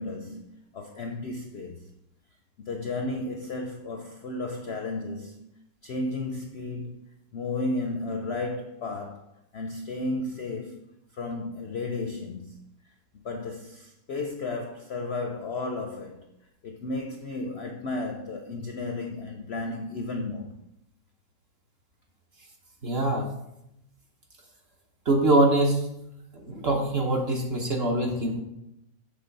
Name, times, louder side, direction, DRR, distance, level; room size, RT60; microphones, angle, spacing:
voice 1, 0.0-1.9 2.6-5.5 5.8-7.0 7.3-10.8 11.1-12.8 13.1-16.3 16.6-20.5, left 2 dB, 65° left, 0.6 m, -33 dB
voice 2, 22.8-23.2 25.1-25.8 26.4-28.4, right 2 dB, 45° right, 1.0 m, -23 dB
7.0 x 3.6 x 5.2 m
omnidirectional pair, 1.7 m